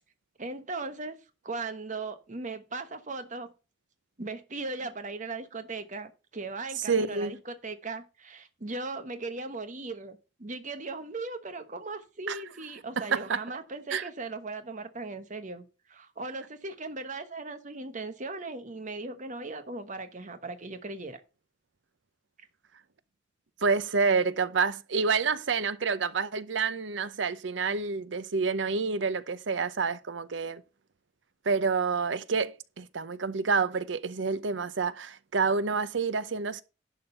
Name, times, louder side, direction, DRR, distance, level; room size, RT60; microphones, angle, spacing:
voice 1, 0.4-1.2 1.4-3.5 4.2-21.2, right 3 dB, 45° right, 1.2 m, -38 dB
voice 2, 6.9-7.4 12.3-12.4 13.0-13.4 13.9-14.0 23.6-30.6 31.5-36.6, right 5 dB, 75° right, 0.7 m, -28 dB
11.0 x 3.9 x 6.6 m
head